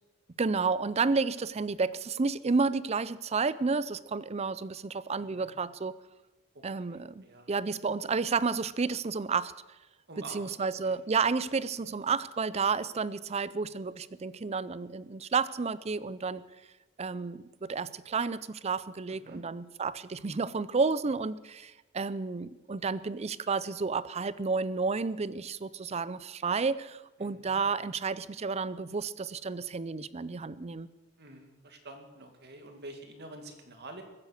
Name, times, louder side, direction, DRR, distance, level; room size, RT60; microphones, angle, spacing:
voice 1, 0.4-6.0 6.6-9.5 10.3-16.5 17.0-30.9, right 4 dB, 30° right, 18 dB, 0.5 m, -31 dB
voice 2, 5.2-5.5 6.5-7.5 10.1-11.0 11.8-11.9 19.1-19.4 27.2-27.6 31.2-34.0, right 2 dB, 50° right, 5 dB, 2.3 m, -48 dB
22.0 x 9.8 x 6.5 m, 1.1 s
head